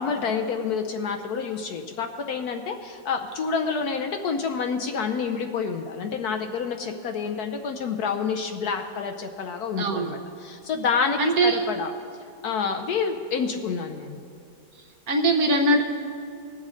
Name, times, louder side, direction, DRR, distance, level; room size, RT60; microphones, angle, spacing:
voice 1, 0.0-11.9 12.4-14.2, left 5 dB, 65° left, 5 dB, 1.0 m, -28 dB
voice 2, 9.8-10.1 11.2-11.6 15.1-15.8, right 2 dB, 60° right, 3 dB, 1.2 m, -21 dB
19.5 x 7.3 x 3.8 m, 2.5 s
omnidirectional pair, 2.0 m